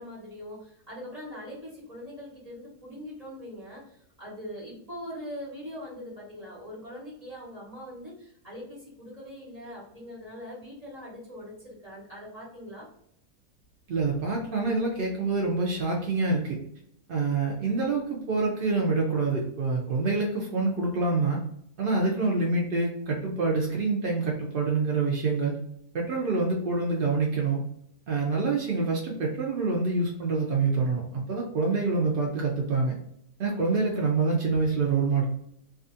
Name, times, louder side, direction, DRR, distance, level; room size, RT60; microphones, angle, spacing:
voice 1, 0.0-12.9, equal, 25° right, -7 dB, 1.2 m, -42 dB
voice 2, 13.9-16.6 17.1-21.4 21.8-25.6 25.9-27.6 28.1-32.9 33.4-35.2, right 3 dB, 70° right, -2 dB, 0.5 m, -26 dB
2.5 x 2.4 x 2.6 m, 0.70 s
omnidirectional pair, 1.6 m